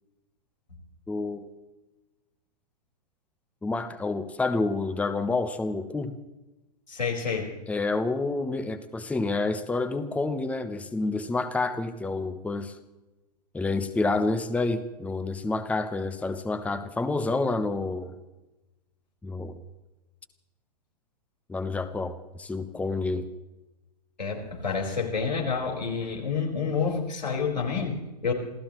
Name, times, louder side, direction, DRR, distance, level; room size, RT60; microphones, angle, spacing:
voice 1, 1.1-1.5 3.6-6.2 7.7-12.8 13.5-18.2 19.2-19.6 21.5-23.3, left 3 dB, 5° left, 10 dB, 1.0 m, -28 dB
voice 2, 6.9-7.5 24.2-28.3, left 5 dB, 90° left, -1 dB, 4.9 m, -29 dB
28.0 x 15.5 x 3.1 m, 1.0 s
figure-of-eight pair, 110°, 21 cm